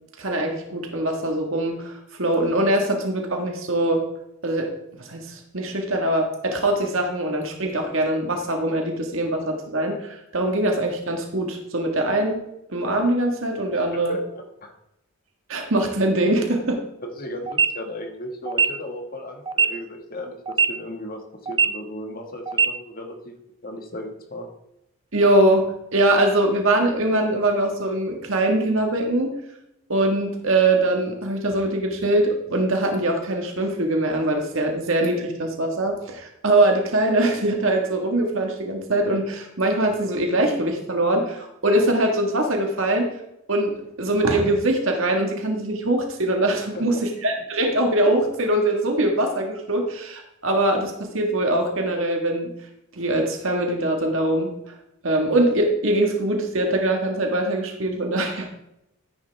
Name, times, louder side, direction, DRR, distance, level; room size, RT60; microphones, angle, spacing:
voice 1, 0.2-1.9 2.2-4.1 4.4-4.7 5.0-12.4 12.7-14.2 15.5-16.8 25.1-29.3 29.9-43.1 43.5-52.5 52.9-54.5 55.0-58.5, right 1 dB, 65° right, 2 dB, 1.7 m, -22 dB
voice 2, 13.9-14.7 17.0-20.4 20.7-23.3 23.6-24.5 46.6-47.0, left 1 dB, 40° left, 3 dB, 1.7 m, -35 dB
sound 1, 17.5-17.7 18.5-18.7 19.5-19.7 20.5-20.7 21.5-21.7 22.5-22.7, right 6 dB, 20° right, 0.5 m, -19 dB
13.5 x 10.0 x 3.5 m, 0.84 s
head